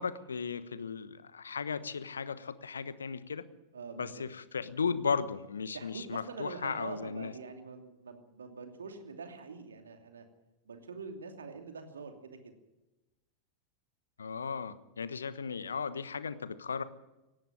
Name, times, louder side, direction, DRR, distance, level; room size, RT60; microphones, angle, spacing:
voice 1, 0.0-3.4 4.0-7.3 14.2-16.8, left 5 dB, 70° left, 15 dB, 1.1 m, -36 dB
voice 2, 3.7-4.2 5.7-10.2 10.6-12.5, right 4 dB, 70° right, 5 dB, 2.7 m, -44 dB
18.0 x 16.0 x 9.0 m, 1.0 s
figure-of-eight pair, 90°, 0 cm